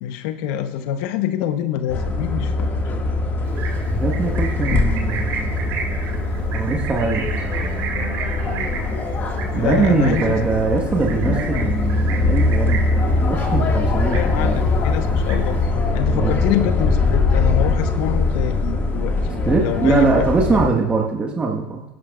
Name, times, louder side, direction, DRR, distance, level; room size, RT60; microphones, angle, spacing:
voice 1, 0.0-2.7 9.6-10.3 14.1-15.6 15.9-19.1 19.6-20.2, left 10 dB, 65° left, 9 dB, 0.9 m, -25 dB
sound 1, 1.9-20.7, left 3 dB, 35° left, 1.9 m, -21 dB
Livestock farm animals working animals, 3.4-13.1 13.4-13.7 14.0-14.7 15.0-15.7, right 5 dB, 55° right, 2.3 m, -32 dB
voice 2, 3.9-5.5 6.5-7.3 9.5-14.6 16.1-16.3 19.4-21.8, right 4 dB, 20° right, 0 dB, 1.4 m, -22 dB
22.0 x 11.5 x 2.4 m, 1.0 s
hypercardioid pair, 90°, 6 cm